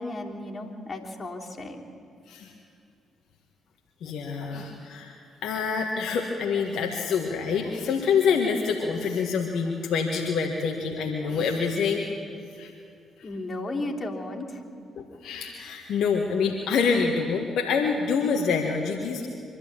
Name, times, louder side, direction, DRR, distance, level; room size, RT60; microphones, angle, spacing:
voice 1, 0.0-1.8 13.2-14.6, left 2 dB, 40° left, -1 dB, 3.3 m, -34 dB
voice 2, 4.0-12.0 12.6-12.7 14.9-19.3, left 5 dB, 70° left, 1 dB, 1.6 m, -26 dB
24.5 x 12.0 x 8.8 m, 2.5 s
hypercardioid pair, 45°, 0 cm